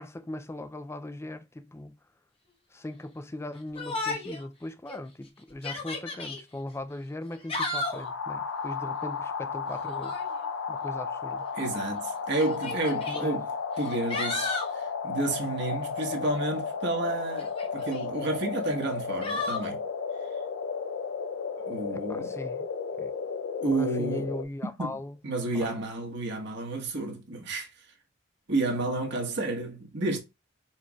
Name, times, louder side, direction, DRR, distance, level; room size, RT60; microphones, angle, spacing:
voice 1, 0.0-2.0 2.7-10.3 10.7-11.5 13.1-13.5 21.9-22.7 23.0-23.1 23.6-25.2 25.5-25.7, left 1 dB, 15° left, 0.4 m, -39 dB
Yell, 3.8-4.4 4.9-5.0 5.5-6.4 7.3-8.1 9.8-10.3 11.4-11.5 12.4-13.2 13.8-14.7 17.4-18.0 19.2-19.7, left 3 dB, 30° left, 1.1 m, -33 dB
sound 1, 7.8-24.4, left 5 dB, 85° left, 0.5 m, -34 dB
voice 2, 11.5-13.5 13.8-19.8 21.7-22.3 23.6-24.3 24.8-24.9 25.2-27.7 28.5-30.2, right 2 dB, 60° right, 1.3 m, -31 dB
4.5 x 4.5 x 2.3 m
head